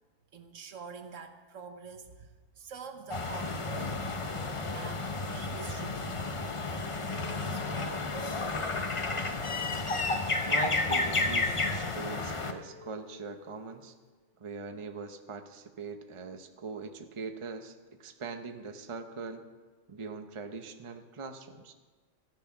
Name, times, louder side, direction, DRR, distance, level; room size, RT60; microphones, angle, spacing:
voice 1, 0.3-4.1 4.4-9.1, right 6 dB, 70° right, 8 dB, 1.3 m, -47 dB
sound 1, 3.1-12.5, left 3 dB, 30° left, 0.7 m, -32 dB
sound 2, 9.9-14.1, left 2 dB, 65° left, 3.1 m, -52 dB
voice 2, 10.5-13.9 14.4-19.4 19.9-21.7, right 4 dB, 25° right, 6 dB, 0.8 m, -41 dB
15.0 x 10.5 x 5.9 m, 1.4 s
omnidirectional pair, 1.4 m